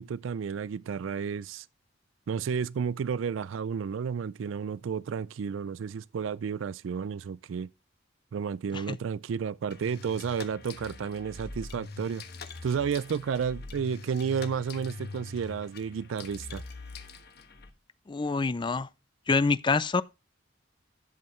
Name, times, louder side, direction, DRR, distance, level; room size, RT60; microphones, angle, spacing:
voice 1, 0.0-1.7 2.3-7.7 8.3-12.2 12.6-16.6, right 6 dB, 85° right, 0.4 m, -32 dB
sound 1, 9.7-17.7, left 3 dB, 55° left, 1.2 m, -43 dB
voice 2, 18.1-18.9 19.3-20.0, left 4 dB, 25° left, 0.4 m, -26 dB
12.0 x 7.6 x 3.1 m
head